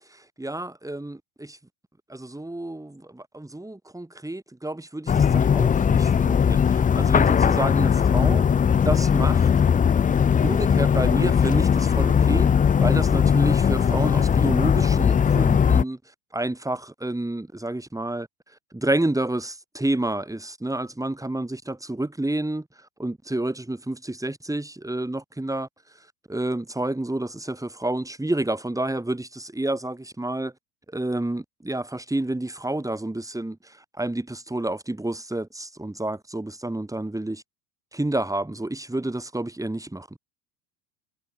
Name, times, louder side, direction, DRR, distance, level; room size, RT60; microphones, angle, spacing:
voice 1, 0.1-1.6 2.1-8.5 8.8-9.5 10.4-16.0 16.3-18.3 18.7-25.7 26.3-30.5 30.9-37.4 37.9-40.2, right 1 dB, 5° right, 4.2 m, -29 dB
sound 1, 5.1-15.8, left 7 dB, 15° left, 0.5 m, -19 dB
supercardioid pair, 100°, 49 cm